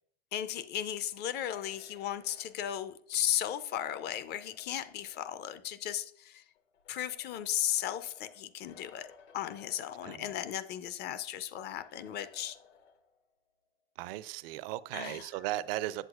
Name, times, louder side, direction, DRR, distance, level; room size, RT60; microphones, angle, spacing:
voice 1, 0.3-6.4 6.9-9.1 9.3-12.6 14.9-15.2, left 11 dB, 30° left, 12 dB, 0.4 m, -35 dB
sound 1, 0.9-5.6 6.6-10.7 11.0-11.1 11.8-13.3, left 6 dB, 80° left, 1.3 m, -61 dB
voice 2, 14.0-16.1, right 15 dB, 55° right, 17 dB, 0.5 m, -37 dB
8.0 x 7.5 x 2.3 m, 0.65 s
hypercardioid pair, 100°, 36 cm